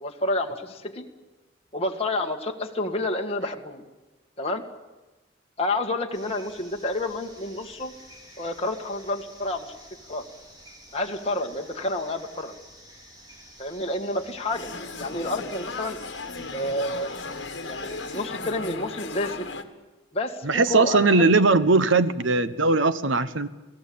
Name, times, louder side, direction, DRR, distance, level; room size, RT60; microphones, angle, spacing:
voice 1, 0.0-1.1 1.7-3.8 4.4-4.6 5.6-7.9 8.4-9.8 10.1-10.2 10.9-12.5 13.6-16.0 16.5-17.1 17.6-19.5 20.1-21.3, left 2 dB, 30° left, 2 dB, 1.9 m, -29 dB
sound 1, 6.1-18.3, equal, 20° right, 4.2 m, -50 dB
sound 2, 14.5-19.6, left 3 dB, 60° left, 1.8 m, -36 dB
voice 2, 20.4-23.5, right 3 dB, 75° right, 13 dB, 1.2 m, -20 dB
28.0 x 18.0 x 8.7 m, 1.2 s
head